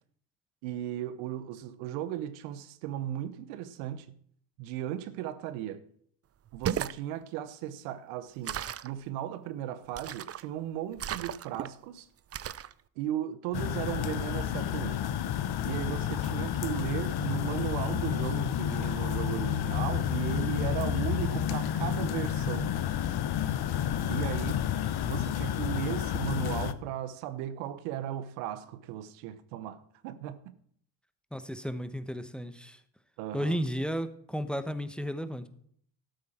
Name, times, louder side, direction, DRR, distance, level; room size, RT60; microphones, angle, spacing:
voice 1, 0.6-4.1 4.6-5.8 6.5-8.6 8.8-12.1 13.0-15.0 15.6-22.7 24.1-24.6 25.0-30.4 33.2-33.6, right 11 dB, 80° right, 0.9 m, -36 dB
sound 1, 6.5-7.0 8.4-8.9 9.9-10.5 11.0-11.7 12.3-12.7, right 10 dB, 30° right, 0.5 m, -35 dB
sound 2, 13.5-26.7, left 10 dB, 50° left, 0.9 m, -30 dB
voice 2, 31.3-32.8 33.3-35.5, equal, ahead, 1.1 m, -33 dB
12.5 x 8.5 x 4.4 m
hypercardioid pair, 60°, 49 cm